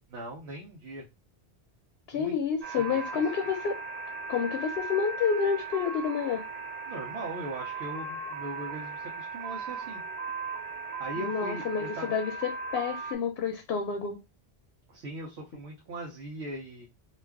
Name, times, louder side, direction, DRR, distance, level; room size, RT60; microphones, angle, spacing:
voice 1, 0.1-1.1 2.1-2.3 2.7-3.0 6.9-10.0 11.0-12.1 14.9-16.9, right 1 dB, 80° right, 0.9 m, -40 dB
voice 2, 2.1-3.8 4.3-6.4 11.2-14.2, left 6 dB, 75° left, 0.8 m, -29 dB
sound 1, 2.6-13.2, right 4 dB, 45° right, 0.5 m, -37 dB
2.4 x 2.3 x 3.3 m
omnidirectional pair, 1.1 m